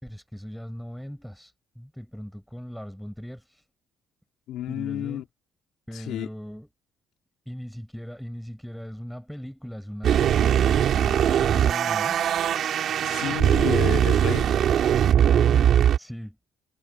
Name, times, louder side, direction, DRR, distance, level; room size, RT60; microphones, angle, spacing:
voice 1, 0.0-3.7 4.7-5.2 5.9-6.7 7.4-12.2 15.2-16.4, equal, ahead, 4.9 m, -38 dB
voice 2, 4.5-5.2 5.9-6.3 13.0-14.5, left 12 dB, 75° left, 2.9 m, -31 dB
sound 1, 10.0-16.0, right 9 dB, 60° right, 2.7 m, -21 dB
cardioid pair, 115°, 0 cm